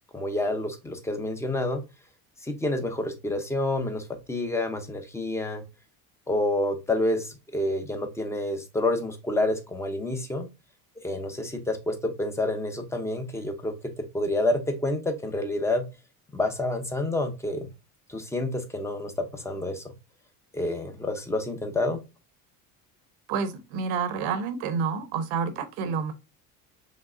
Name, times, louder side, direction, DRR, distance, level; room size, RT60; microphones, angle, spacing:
voice 1, 0.1-1.8 2.4-5.6 6.3-10.5 11.0-13.7 14.1-15.9 16.3-17.7 18.1-19.9 20.5-22.0, left 1 dB, 5° left, 6 dB, 0.7 m, -28 dB
voice 2, 23.3-26.1, right 6 dB, 85° right, 11 dB, 0.9 m, -29 dB
5.2 x 3.4 x 2.5 m, 0.25 s
cardioid pair, 145°, 36 cm